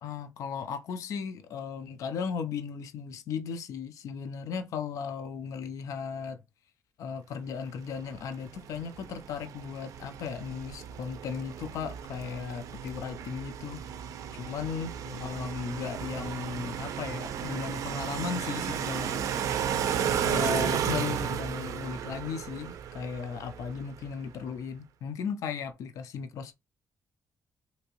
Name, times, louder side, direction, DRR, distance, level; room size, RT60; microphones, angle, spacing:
voice 1, 0.0-6.4 7.0-13.8 14.4-19.3 20.0-26.5, left 6 dB, 85° left, 0.5 m, -36 dB
sound 1, 8.0-24.1, right 8 dB, 85° right, 0.4 m, -34 dB
3.4 x 2.9 x 2.9 m
wide cardioid pair, 160°, 5 cm